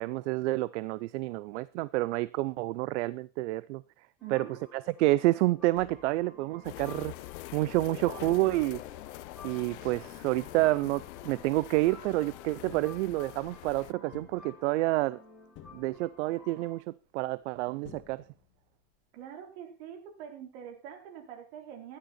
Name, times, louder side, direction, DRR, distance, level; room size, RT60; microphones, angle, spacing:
voice 1, 0.0-3.8 4.3-4.5 4.7-7.1 7.5-8.8 9.4-15.2 15.7-18.2, right 18 dB, 85° right, 19 dB, 0.6 m, -29 dB
sound 1, 4.2-16.7, left 3 dB, ahead, 5.6 m, -54 dB
voice 2, 4.2-4.6 19.1-22.0, right 9 dB, 65° right, 4 dB, 4.0 m, -45 dB
Tap, 5.6-6.7 7.1-11.9 12.5-13.6 14.1-15.1 15.5-16.4 17.4-17.5 17.8-18.7 18.9-19.0, left 10 dB, 35° left, 1.8 m, -53 dB
sound 2, 6.6-13.9, left 19 dB, 75° left, 0.6 m, -45 dB
13.0 x 11.5 x 4.3 m, 0.34 s
supercardioid pair, 165°, 34 cm